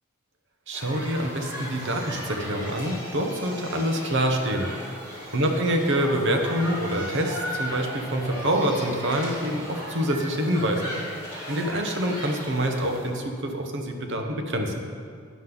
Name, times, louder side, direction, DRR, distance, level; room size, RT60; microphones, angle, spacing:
sound 1, 0.7-13.1, equal, 20° right, 2.9 m, -37 dB
voice 1, 0.7-4.7 5.3-10.9 11.5-14.7, equal, 55° right, 3 dB, 1.2 m, -26 dB
11.5 x 9.6 x 4.0 m, 2.1 s
head